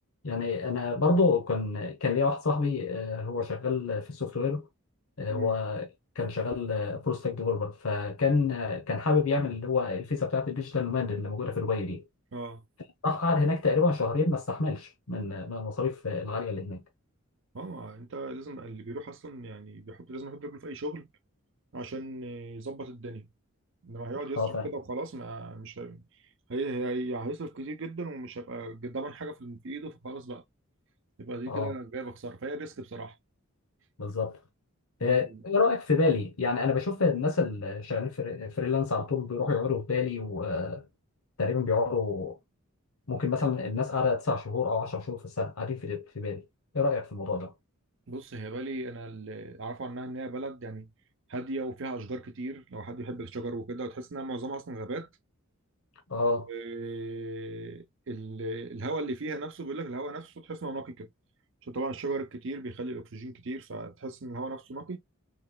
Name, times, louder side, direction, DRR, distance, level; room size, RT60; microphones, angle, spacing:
voice 1, 0.2-4.7 5.2-5.9 6.2-12.0 13.0-16.8 24.4-24.7 31.5-31.7 34.0-34.4 35.0-40.8 41.4-42.4 43.1-46.4 46.7-47.5 56.1-56.5, left 4 dB, 75° left, 0.8 m, -28 dB
voice 2, 12.3-12.6 17.5-21.1 21.7-23.3 23.8-26.1 26.5-30.4 31.2-33.2 35.0-35.4 48.1-50.9 51.3-55.1 56.5-61.1 61.6-65.0, right 2 dB, 60° right, 0.6 m, -37 dB
4.0 x 3.1 x 2.2 m
head